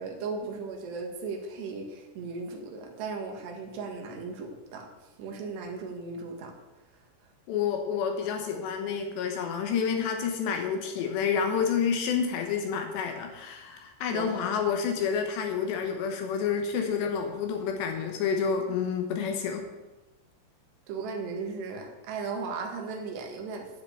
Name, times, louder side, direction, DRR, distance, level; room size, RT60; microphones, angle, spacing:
voice 1, 0.0-4.9 5.2-6.5 14.1-14.6 20.9-23.7, right 4 dB, 65° right, 3 dB, 3.5 m, -36 dB
voice 2, 7.5-19.7, left 6 dB, 75° left, 4 dB, 2.9 m, -29 dB
10.5 x 6.6 x 8.8 m, 1.1 s
omnidirectional pair, 5.8 m